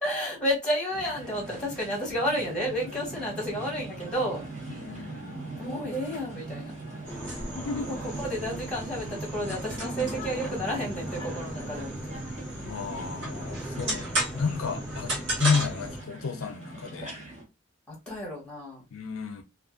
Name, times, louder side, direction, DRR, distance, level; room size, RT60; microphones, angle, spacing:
voice 1, 0.0-4.4 4.7-5.1 5.6-6.7 7.9-12.0 14.7-14.8 17.9-18.8, equal, 5° left, 1.2 m, -31 dB
sound 1, 0.9-17.4, right 2 dB, 35° right, 1.0 m, -42 dB
voice 2, 4.7-5.5 7.4-7.9 12.7-17.1 18.9-19.4, left 5 dB, 70° left, 0.4 m, -32 dB
sound 2, 7.1-16.0, right 1 dB, 55° right, 1.2 m, -34 dB
2.5 x 2.4 x 2.4 m
head